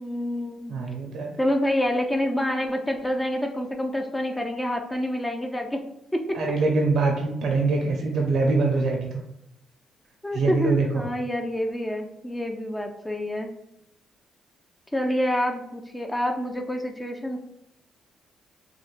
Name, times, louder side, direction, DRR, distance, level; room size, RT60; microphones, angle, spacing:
voice 1, 0.0-0.8 1.4-5.8 6.1-6.3 10.2-13.5 14.9-17.4, left 1 dB, 10° left, 3 dB, 0.3 m, -27 dB
voice 2, 0.7-1.3 6.3-9.2 10.3-11.1, right 3 dB, 70° right, 1 dB, 0.5 m, -24 dB
3.1 x 2.0 x 2.4 m, 0.82 s
cardioid pair, 90°, 0 cm